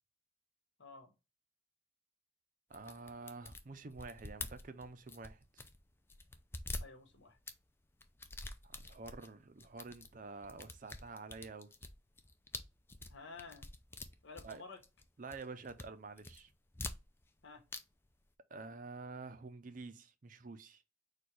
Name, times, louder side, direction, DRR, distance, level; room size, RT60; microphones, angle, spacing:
voice 1, 0.8-1.1 6.8-7.4 13.1-13.7 14.2-14.8 17.4-17.6, left 4 dB, 75° left, 1.3 m, -52 dB
sound 1, 2.7-5.8 6.1-7.6 8.0-9.3 9.6-10.1 10.4-15.0 15.3-15.9 16.2-17.4 17.7-17.8 18.1-18.2, left 2 dB, 10° left, 0.3 m, -46 dB
voice 2, 2.7-5.7 8.6-11.7 14.4-14.6 15.2-16.5 18.5-20.8, right 3 dB, 40° right, 0.5 m, -49 dB
4.3 x 2.4 x 4.7 m
head